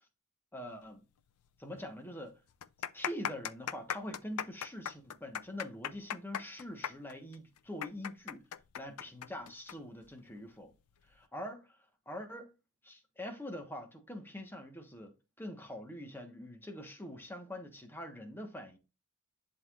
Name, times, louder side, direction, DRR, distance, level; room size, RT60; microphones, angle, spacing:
voice 1, 0.5-1.0 1.6-2.4 2.9-8.5 8.7-10.7 11.1-11.8 12.1-12.5 12.8-18.8, left 1 dB, 10° left, 1.2 m, -44 dB
sound 1, 1.4-1.5 1.8-1.9 2.5-9.7 10.0-10.1 10.9-11.2, left 9 dB, 90° left, 0.5 m, -38 dB
11.0 x 3.8 x 2.4 m
head